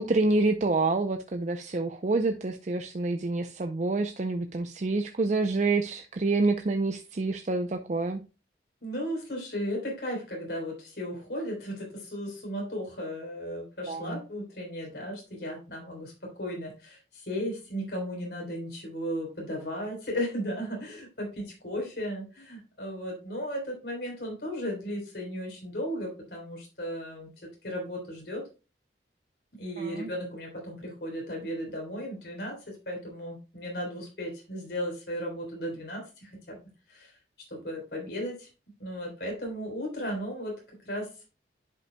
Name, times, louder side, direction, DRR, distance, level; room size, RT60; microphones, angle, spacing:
voice 1, 0.0-8.2 13.9-14.2 29.8-30.1, right 3 dB, 40° right, 0.5 m, -27 dB
voice 2, 8.8-16.1 16.4-28.4 29.6-32.6 32.9-36.6 36.9-37.1 37.5-38.5 38.8-40.5 40.8-41.1, equal, 65° left, 3.8 m, -35 dB
10.5 x 5.4 x 2.2 m
head